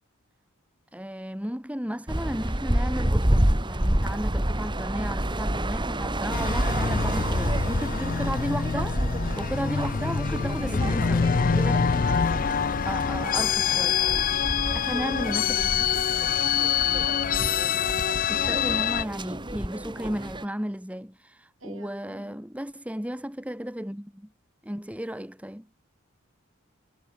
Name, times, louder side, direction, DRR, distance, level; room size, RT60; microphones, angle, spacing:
voice 1, 0.9-9.0 9.4-11.9 12.8-14.0 14.7-15.7 18.3-24.3 24.6-25.7, equal, 5° right, 2.5 m, -34 dB
sound 1, 2.1-20.5, right 1 dB, 20° right, 2.4 m, -29 dB
sound 2, 6.3-19.0, left 7 dB, 40° left, 0.5 m, -25 dB
voice 2, 12.0-12.4 13.3-14.1 21.6-22.4, right 2 dB, 65° right, 7.9 m, -45 dB
head